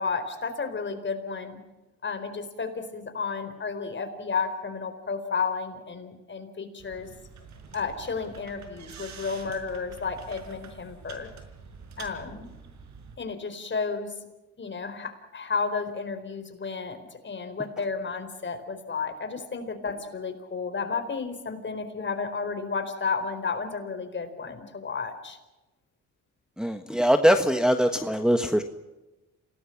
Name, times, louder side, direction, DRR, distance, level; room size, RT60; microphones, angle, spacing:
voice 1, 0.0-1.6 2.0-7.1 7.7-11.3 12.0-12.5 13.2-14.1 14.6-17.0 17.2-25.4, left 5 dB, 40° left, 8 dB, 4.4 m, -32 dB
sound 1, 6.8-13.2, right 5 dB, 70° right, 5.0 m, -46 dB
voice 2, 26.6-28.6, equal, ahead, 6 dB, 1.4 m, -22 dB
28.0 x 19.0 x 5.9 m, 1.1 s
cardioid pair, 90°, 30 cm